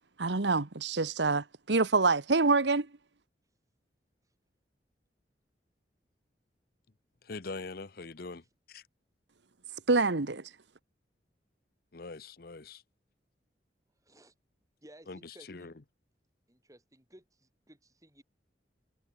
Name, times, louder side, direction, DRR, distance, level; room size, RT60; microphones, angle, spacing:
voice 1, 0.2-2.9 9.9-10.5, right 3 dB, 80° right, 1.2 m, -26 dB
voice 2, 7.2-8.8 11.9-12.8 15.1-15.7, left 3 dB, 55° left, 0.9 m, -43 dB
voice 3, 14.0-14.3 14.8-15.8 16.5-18.2, right 1 dB, 20° right, 6.6 m, -57 dB
head